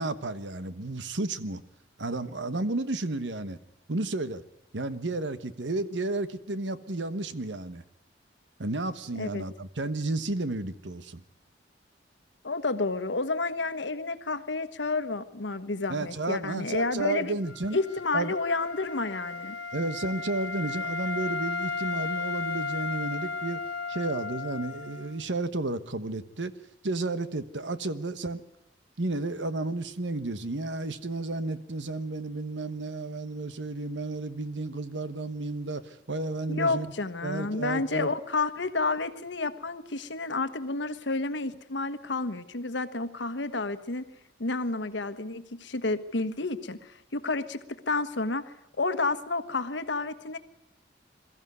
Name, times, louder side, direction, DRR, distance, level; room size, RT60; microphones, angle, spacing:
voice 1, 0.0-1.6 2.0-3.6 3.9-4.4 4.7-7.8 8.6-11.2 15.9-17.8 18.1-18.4 19.7-23.6 23.9-26.5 26.8-28.4 29.0-36.9 37.2-38.1, right 2 dB, 85° right, 13 dB, 1.2 m, -32 dB
voice 2, 12.4-17.4 17.7-19.6 36.5-44.0 44.4-50.4, left 3 dB, 85° left, 12 dB, 1.3 m, -30 dB
Wind instrument woodwind instrument, 17.4-25.2, left 4 dB, 60° left, 1.8 m, -35 dB
22.0 x 14.0 x 9.5 m, 0.87 s
head